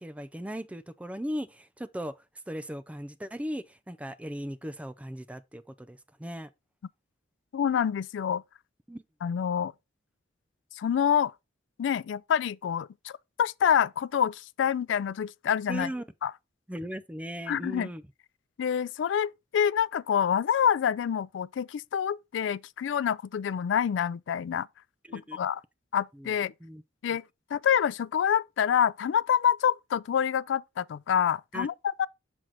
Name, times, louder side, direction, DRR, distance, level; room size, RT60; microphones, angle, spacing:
voice 1, 0.0-6.5 8.9-9.0 15.7-16.0 16.7-18.0 25.1-25.4 26.2-26.3 26.6-26.8 31.5-31.7, equal, 5° right, 0.4 m, -38 dB
voice 2, 7.5-8.4 9.2-9.7 10.7-11.3 11.8-15.9 16.2-16.3 17.5-17.9 18.6-24.7 25.1-25.6 25.9-26.5 27.0-27.2 27.5-32.1, left 8 dB, 75° left, 0.3 m, -27 dB
6.2 x 4.6 x 4.0 m
head